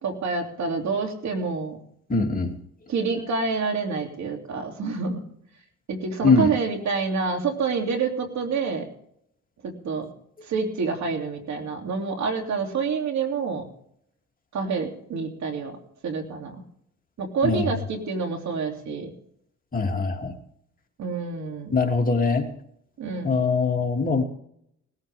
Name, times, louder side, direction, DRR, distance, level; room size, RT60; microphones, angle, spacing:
voice 1, 0.0-1.8 2.9-5.2 5.9-8.9 9.6-10.1 10.4-13.7 14.5-15.8 16.0-16.6 17.2-19.1 21.0-21.7 23.0-23.3, right 4 dB, 65° right, 3 dB, 3.1 m, -27 dB
voice 2, 2.1-2.6 6.2-6.5 17.4-17.7 19.7-20.3 21.7-22.5 23.2-24.2, left 4 dB, 30° left, 1 dB, 3.0 m, -22 dB
20.0 x 14.0 x 3.6 m, 0.71 s
cardioid pair, 90°, 30 cm